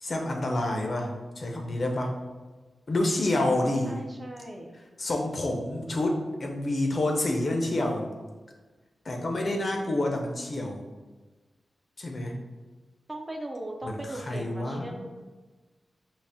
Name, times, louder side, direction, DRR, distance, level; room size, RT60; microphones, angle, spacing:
voice 1, 0.0-2.1 2.9-4.1 5.0-8.1 9.0-10.9 12.0-12.4 13.8-15.1, left 1 dB, 40° left, 1 dB, 0.5 m, -28 dB
voice 2, 3.8-4.8 13.1-15.1, right 1 dB, 15° right, 1 dB, 0.3 m, -38 dB
4.0 x 2.0 x 3.4 m, 1.3 s
wide cardioid pair, 145°, 0 cm